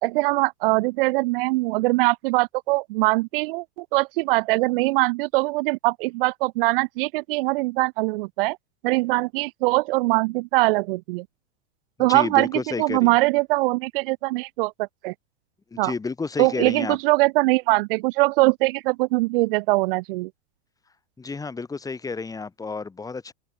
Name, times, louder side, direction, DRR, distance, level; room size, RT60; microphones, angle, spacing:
voice 1, 0.0-8.6 8.8-11.2 12.0-12.5 12.8-15.1 15.8-15.9 16.4-20.3, right 23 dB, 55° right, 1.5 m, -22 dB
voice 2, 12.0-13.1 15.7-17.0 21.2-23.3, left 4 dB, 10° left, 3.9 m, -31 dB
supercardioid pair, 145°, 34 cm